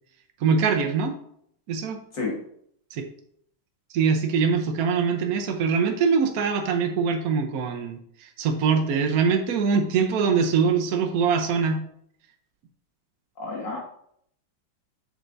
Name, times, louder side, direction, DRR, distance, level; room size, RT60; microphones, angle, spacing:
voice 1, 0.4-1.1 1.7-2.0 2.9-3.1 3.9-11.8, right 5 dB, 60° right, 5 dB, 1.0 m, -23 dB
voice 2, 2.1-2.4 13.4-13.8, left 3 dB, 65° left, -2 dB, 2.6 m, -30 dB
7.7 x 6.7 x 2.6 m, 0.68 s
omnidirectional pair, 2.2 m